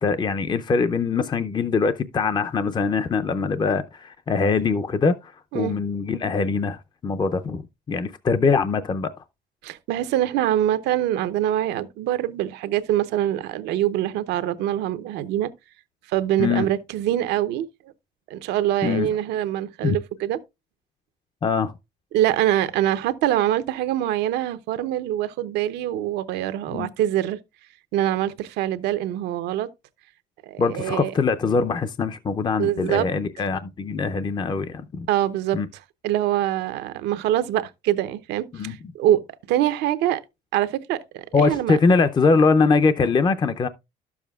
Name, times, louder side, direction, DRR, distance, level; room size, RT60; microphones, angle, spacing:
voice 1, 0.0-7.6 7.9-9.1 16.4-16.7 18.8-19.1 19.8-20.0 21.4-21.7 26.7-26.9 30.6-35.1 35.5-35.7 38.5-38.7 41.3-43.7, left 4 dB, 25° left, 0.5 m, -22 dB
voice 2, 9.6-15.5 16.1-17.7 18.3-20.4 22.1-27.4 27.9-29.7 30.5-31.1 32.6-33.1 35.1-35.6 36.0-39.2 39.5-40.2 40.5-41.8, right 12 dB, 85° right, 0.8 m, -24 dB
12.0 x 7.1 x 2.3 m
cardioid pair, 110°, 17 cm